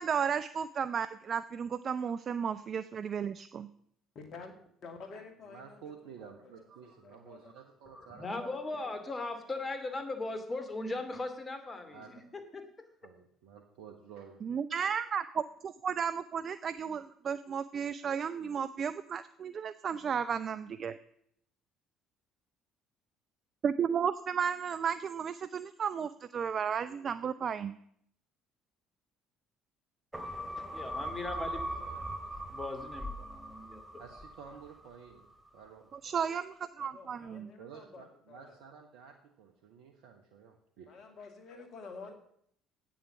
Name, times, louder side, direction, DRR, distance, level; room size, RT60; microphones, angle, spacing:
voice 1, 0.0-3.7 14.4-21.0 23.6-27.8 35.9-37.5, right 7 dB, 45° right, 13 dB, 0.5 m, -33 dB
voice 2, 4.1-4.5 4.8-6.5 6.8-7.5 8.2-9.0 30.3-32.1 36.8-38.6 40.9-42.1, left 4 dB, 55° left, 6 dB, 2.4 m, -51 dB
voice 3, 5.5-8.3 11.9-12.2 13.0-14.4 34.0-36.1 37.6-40.9, right 7 dB, 70° right, 3 dB, 1.2 m, -52 dB
voice 4, 7.9-12.9 30.6-31.6 32.5-34.0, left 2 dB, 30° left, 7 dB, 2.5 m, -39 dB
sound 1, 30.1-34.8 35.2-35.3, equal, 10° right, 3.2 m, -40 dB
10.0 x 8.8 x 7.0 m, 0.69 s
hypercardioid pair, 55°, 0 cm